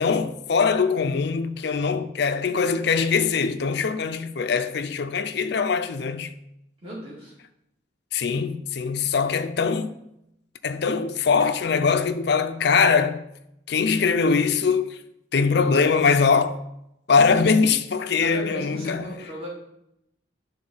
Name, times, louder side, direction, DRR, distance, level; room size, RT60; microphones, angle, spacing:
voice 1, 0.0-6.3 8.1-9.9 10.6-13.2 13.7-15.0 15.3-16.6 17.1-19.1, left 5 dB, 55° left, 0.5 m, -22 dB
voice 2, 6.8-7.3 18.2-19.5, equal, 30° right, 2.1 m, -36 dB
10.5 x 3.7 x 3.9 m
head